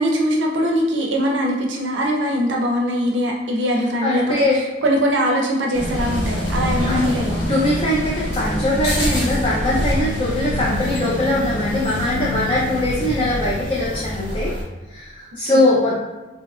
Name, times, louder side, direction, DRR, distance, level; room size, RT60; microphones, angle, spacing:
voice 1, 0.0-7.5 15.5-15.6, equal, 85° right, -1 dB, 0.4 m, -21 dB
voice 2, 4.0-4.6 6.9-7.1 7.5-14.5 14.9-16.0, left 1 dB, 30° left, -6 dB, 0.4 m, -21 dB
sound 1, 5.7-14.6, left 1 dB, 65° left, 0.7 m, -25 dB
2.7 x 2.3 x 2.3 m, 1.1 s
head